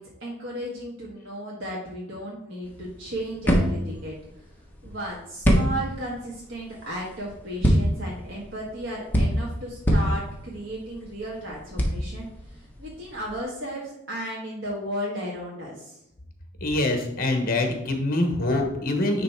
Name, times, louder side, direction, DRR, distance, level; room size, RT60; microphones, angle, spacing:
voice 1, 0.0-4.2 4.8-16.0, equal, 70° right, -4 dB, 1.5 m, -34 dB
sound 1, 2.6-13.4, equal, 10° left, 1.2 m, -26 dB
voice 2, 16.6-19.2, left 2 dB, 45° left, 4 dB, 1.2 m, -24 dB
9.6 x 3.3 x 4.6 m, 0.82 s
head